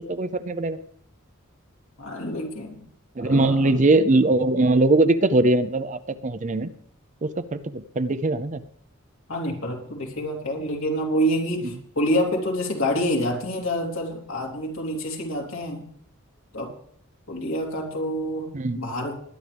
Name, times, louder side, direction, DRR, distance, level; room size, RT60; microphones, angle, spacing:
voice 1, 0.1-0.8 3.2-6.7 7.2-8.6 18.5-18.8, right 2 dB, 35° right, 13 dB, 0.5 m, -21 dB
voice 2, 2.0-2.8 3.2-3.8 9.3-15.9 16.5-16.7 17.3-18.5 18.7-19.1, equal, 75° left, -1 dB, 3.1 m, -27 dB
20.5 x 10.5 x 3.4 m, 0.65 s
head